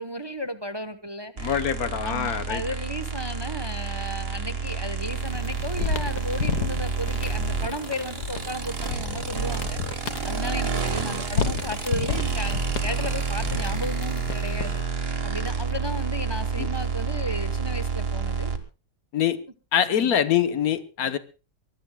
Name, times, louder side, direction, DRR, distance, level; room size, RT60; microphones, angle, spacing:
voice 1, 0.0-1.6 2.0-9.8 10.2-14.8 15.2-18.5 19.9-20.2, equal, 20° right, 0.9 m, -34 dB
voice 2, 1.4-2.6 16.6-16.7 19.1-19.4 19.7-21.2, left 9 dB, 70° left, 1.4 m, -24 dB
sound 1, 1.4-18.6, right 5 dB, 40° right, 1.6 m, -29 dB
sound 2, 5.1-14.9, left 6 dB, 85° left, 1.9 m, -32 dB
24.0 x 19.0 x 2.3 m
omnidirectional pair, 1.7 m